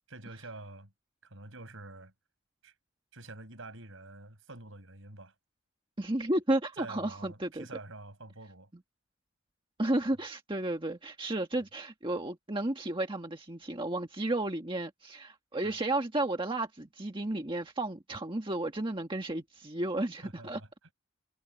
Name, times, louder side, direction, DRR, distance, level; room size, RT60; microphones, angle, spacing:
voice 1, 0.1-0.9 1.2-2.1 2.6-2.7 3.1-5.3 6.8-8.7 15.6-15.7 20.2-20.7, right 2 dB, 65° right, 8.0 m, -47 dB
voice 2, 6.0-7.7 9.8-20.6, right 1 dB, 25° right, 1.6 m, -32 dB
head